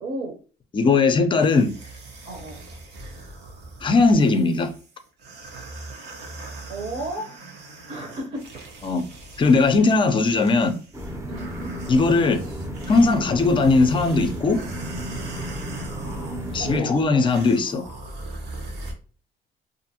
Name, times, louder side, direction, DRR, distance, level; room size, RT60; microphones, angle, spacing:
voice 1, 0.0-0.3 2.2-2.6 6.7-7.3 7.9-8.6 11.3-11.8 16.6-16.9, right 2 dB, 45° right, 0.8 m, -32 dB
voice 2, 0.7-1.7 3.8-4.7 8.8-9.1 9.4-10.8 11.9-12.4 12.9-14.6 16.5-17.9, left 3 dB, 30° left, 0.5 m, -19 dB
sound 1, 1.4-18.9, right 3 dB, 90° right, 0.8 m, -40 dB
sound 2, 10.9-16.8, equal, 15° right, 0.6 m, -33 dB
2.5 x 2.5 x 2.7 m
cardioid pair, 110°, 17 cm